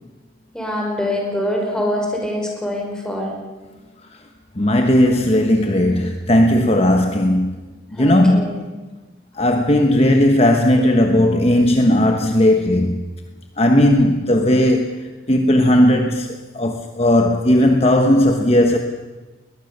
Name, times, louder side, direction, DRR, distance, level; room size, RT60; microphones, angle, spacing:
voice 1, 0.5-3.3 8.0-8.6, left 1 dB, 5° left, 5.2 m, -24 dB
voice 2, 4.6-7.6 8.0-8.5 9.4-13.0 13.6-15.0 15.3-16.3 16.5-18.8, left 1 dB, 35° left, 1.2 m, -16 dB
21.5 x 20.5 x 6.8 m
head